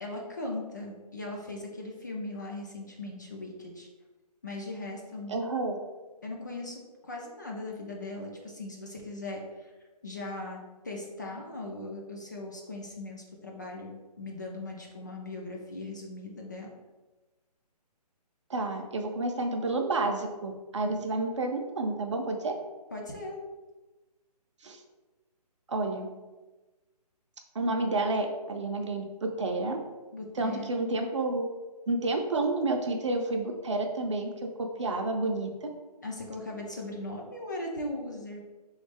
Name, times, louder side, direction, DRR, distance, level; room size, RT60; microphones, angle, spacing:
voice 1, 0.0-3.9 4.4-5.3 6.2-9.7 10.0-10.6 10.8-16.7 20.8-20.9 22.9-23.4 30.1-30.7 36.0-38.4, left 2 dB, 30° left, -1 dB, 0.4 m, -39 dB
voice 2, 5.3-5.8 18.5-22.5 24.6-24.8 25.7-26.1 27.5-29.8 30.4-31.4 31.9-35.7, right 2 dB, 45° right, 3 dB, 0.5 m, -30 dB
3.9 x 3.1 x 3.4 m, 1.2 s
hypercardioid pair, 170°, 21 cm